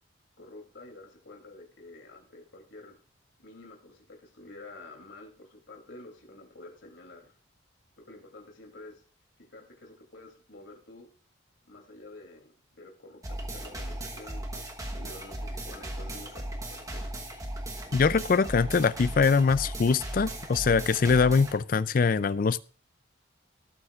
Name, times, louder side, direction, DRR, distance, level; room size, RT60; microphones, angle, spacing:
voice 1, 0.4-3.0 3.4-7.4 8.0-9.0 9.5-11.1 11.7-17.2, left 2 dB, 70° left, 2 dB, 2.8 m, -49 dB
sound 1, 13.2-21.6, right 1 dB, 15° right, 1.1 m, -37 dB
voice 2, 17.9-22.6, left 5 dB, 45° left, 17 dB, 0.4 m, -23 dB
18.0 x 8.6 x 2.4 m, 0.38 s
head